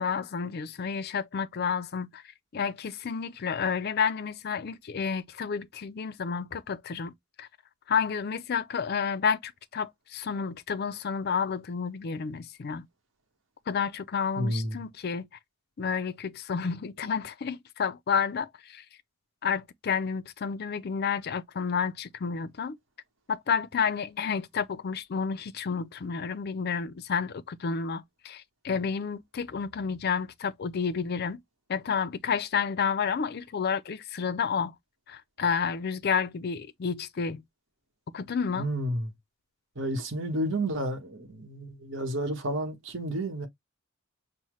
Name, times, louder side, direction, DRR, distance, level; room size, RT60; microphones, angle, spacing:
voice 1, 0.0-2.2 2.5-7.1 7.4-7.5 7.9-12.9 13.7-15.3 15.8-18.8 19.4-22.8 23.3-31.4 31.7-34.7 35.1-37.4 38.1-38.7, left 6 dB, 50° left, 0.4 m, -30 dB
voice 2, 14.4-14.8 38.6-39.1 39.8-43.5, right 1 dB, 60° right, 1.1 m, -31 dB
5.6 x 2.1 x 3.1 m
head